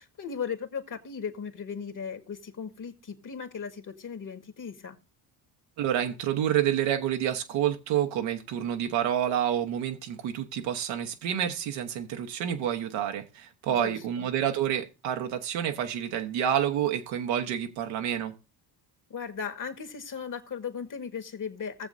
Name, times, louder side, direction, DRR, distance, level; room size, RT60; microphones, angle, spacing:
voice 1, 0.0-5.0 13.7-14.3 19.1-21.9, left 6 dB, 40° left, 2.0 m, -37 dB
voice 2, 5.8-18.3, right 10 dB, 70° right, 1.4 m, -28 dB
19.0 x 7.2 x 2.6 m
hypercardioid pair, 55°, 46 cm